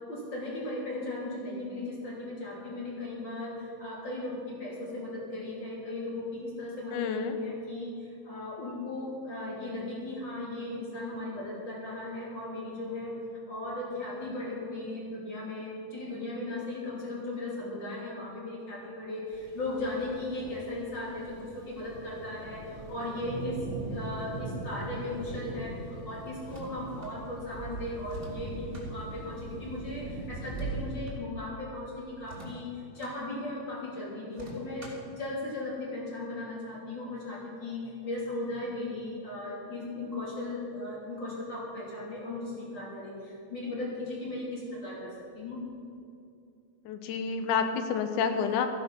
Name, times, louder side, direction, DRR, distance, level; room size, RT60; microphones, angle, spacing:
voice 1, 0.1-7.0 7.3-13.1 13.5-23.6 23.9-45.6, left 2 dB, 35° left, -5 dB, 3.8 m, -37 dB
voice 2, 6.9-7.4 46.8-48.7, left 6 dB, 85° left, 7 dB, 2.5 m, -29 dB
sound 1, 19.3-30.9, right 2 dB, 15° left, 2.0 m, -40 dB
sound 2, 26.4-27.1 28.0-28.9 30.3-31.2 32.2-33.2 34.3-35.1, right 1 dB, 20° right, 2.8 m, -47 dB
14.5 x 10.5 x 5.9 m, 2.6 s
omnidirectional pair, 3.6 m